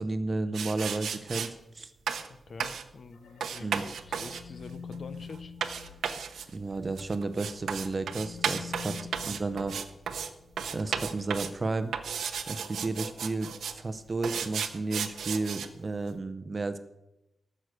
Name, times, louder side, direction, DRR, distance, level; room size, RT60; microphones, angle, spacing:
voice 1, 0.0-1.5 1.7-1.9 3.6-3.8 6.5-8.9 9.2-9.8 10.7-11.9 12.5-13.5 13.7-16.8, right 3 dB, 30° right, 11 dB, 0.7 m, -32 dB
sound 1, 0.5-1.5 2.1-2.3 2.6-2.9 3.4-10.3 10.6-11.6 11.9-13.8 14.2-15.7, right 7 dB, 90° right, 0.8 m, -34 dB
voice 2, 2.2-5.5, left 4 dB, 50° left, 11 dB, 0.8 m, -46 dB
sound 2, 3.1-7.0 7.4-10.8, left 5 dB, 85° left, 0.7 m, -47 dB
13.5 x 6.5 x 6.5 m, 0.93 s
wide cardioid pair, 135°, 0 cm